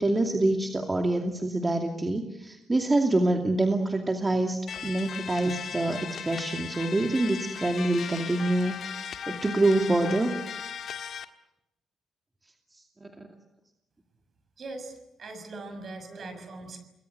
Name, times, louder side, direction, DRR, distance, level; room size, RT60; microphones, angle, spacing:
voice 1, 0.0-10.3 13.0-13.1 15.7-15.8 16.1-16.2, right 2 dB, 20° right, 3 dB, 2.5 m, -26 dB
sound 1, 4.7-11.2, left 7 dB, 60° left, 1.6 m, -37 dB
voice 2, 14.6-14.9 15.2-16.8, right 3 dB, 50° right, 8 dB, 6.6 m, -40 dB
30.0 x 21.0 x 8.1 m, 0.90 s
cardioid pair, 90°, 0 cm